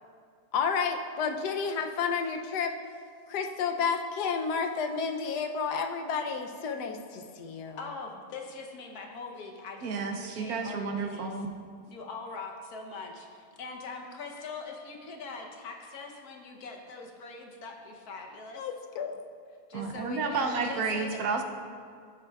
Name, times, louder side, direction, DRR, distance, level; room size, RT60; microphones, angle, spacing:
voice 1, 0.5-2.7 3.3-7.8 18.5-19.2, left 5 dB, 90° left, 5 dB, 1.2 m, -31 dB
voice 2, 7.8-11.3 11.9-18.7 19.7-21.2, left 3 dB, 70° left, 2 dB, 1.4 m, -42 dB
voice 3, 9.8-11.5 19.7-21.4, right 4 dB, 70° right, 4 dB, 1.1 m, -31 dB
13.0 x 7.4 x 2.3 m, 2.1 s
omnidirectional pair, 1.7 m